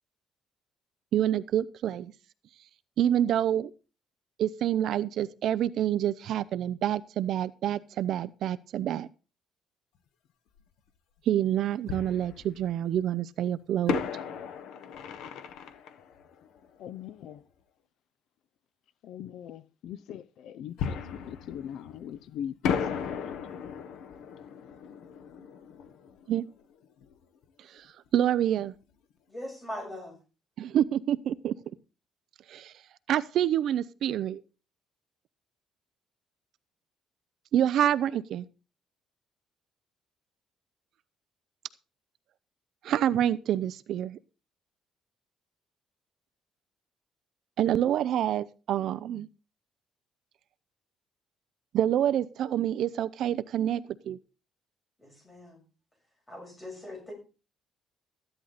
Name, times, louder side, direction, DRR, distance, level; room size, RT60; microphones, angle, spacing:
voice 1, 1.1-2.1 3.0-3.7 4.4-9.1 11.3-14.0 26.3-26.4 27.6-27.9 28.1-28.7 30.6-31.5 32.5-32.7 33.1-34.4 37.5-38.4 42.8-44.2 47.6-49.3 51.7-54.2, right 11 dB, 55° right, 0.5 m, -27 dB
Fireworks, 10.6-10.7 11.9-13.0 13.9-17.3 20.8-22.2 22.6-27.2 27.4-27.5 28.1-28.3, left 7 dB, 85° left, 1.4 m, -36 dB
voice 2, 16.8-17.4 19.0-23.9, left 9 dB, 60° left, 0.6 m, -42 dB
voice 3, 29.3-30.1 55.0-55.6 56.3-57.1, left 1 dB, 15° left, 6.4 m, -41 dB
14.0 x 11.0 x 4.1 m
cardioid pair, 180°, 0 cm